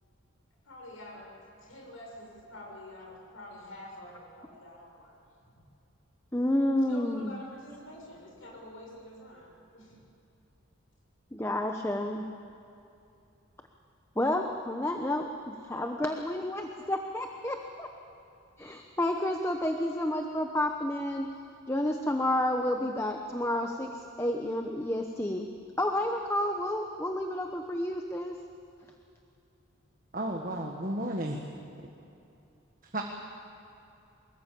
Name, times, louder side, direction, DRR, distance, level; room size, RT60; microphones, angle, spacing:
voice 1, 0.6-5.2 5.4-5.5 6.8-10.0, left 1 dB, 75° left, -1 dB, 6.9 m, -47 dB
voice 2, 6.3-7.4 11.3-12.2 14.2-17.9 18.6-21.3 21.7-25.5 25.8-28.3, left 1 dB, 15° left, 4 dB, 1.0 m, -30 dB
voice 3, 30.1-31.4 32.9-33.0, right 1 dB, 40° right, 1 dB, 1.6 m, -32 dB
24.5 x 21.5 x 8.6 m, 2.7 s
head